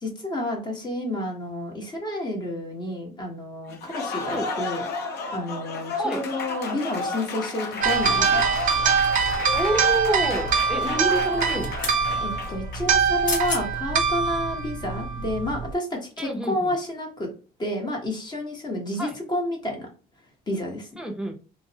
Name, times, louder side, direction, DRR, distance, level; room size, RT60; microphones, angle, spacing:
voice 1, 0.0-4.8 5.3-8.4 12.2-17.3 17.6-19.9 20.5-20.9, left 1 dB, 25° left, 1 dB, 1.0 m, -30 dB
Applause, 3.7-13.1, left 4 dB, 75° left, 0.6 m, -33 dB
sound 1, 7.8-15.7, right 5 dB, 50° right, 0.4 m, -24 dB
sound 2, 9.0-9.6 11.3-12.0 13.0-13.1 13.3-13.6 14.2-14.3, left 3 dB, 50° left, 0.9 m, -33 dB
voice 2, 9.5-11.8 16.2-16.7 19.0-19.1 21.0-21.3, right 1 dB, 5° right, 3 dB, 0.6 m, -28 dB
2.4 x 2.0 x 2.7 m, 0.36 s
cardioid pair, 110°, 17 cm